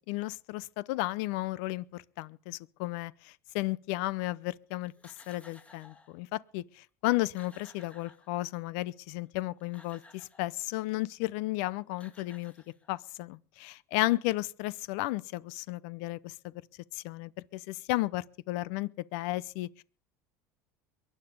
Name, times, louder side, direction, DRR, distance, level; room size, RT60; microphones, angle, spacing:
voice 1, 0.0-12.5 12.9-16.3 16.9-19.8, left 19 dB, 75° left, 0.7 m, -34 dB
sound 1, 4.9-6.2 6.8-6.9 7.1-8.7 9.4-10.5 11.6-11.7 11.9-13.2, left 2 dB, 15° left, 2.2 m, -57 dB
22.5 x 9.8 x 5.4 m
supercardioid pair, 105°, 8 cm